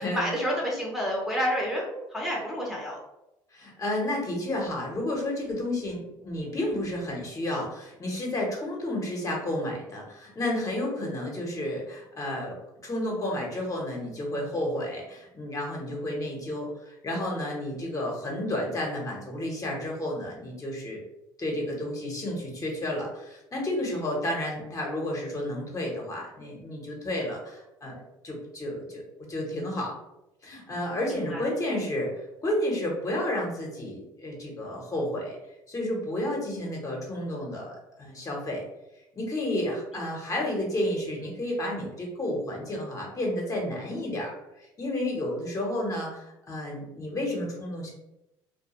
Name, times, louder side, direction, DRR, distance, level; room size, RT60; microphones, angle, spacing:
voice 1, 0.0-3.0 31.1-31.4, equal, 5° right, -3 dB, 0.7 m, -29 dB
voice 2, 3.5-12.6 12.8-21.0 21.4-29.0 29.3-29.9 30.4-35.4 35.7-38.6 39.1-44.4 44.8-47.9, left 1 dB, 30° left, -1 dB, 0.8 m, -31 dB
2.2 x 2.1 x 2.9 m, 0.89 s
supercardioid pair, 75°, 11 cm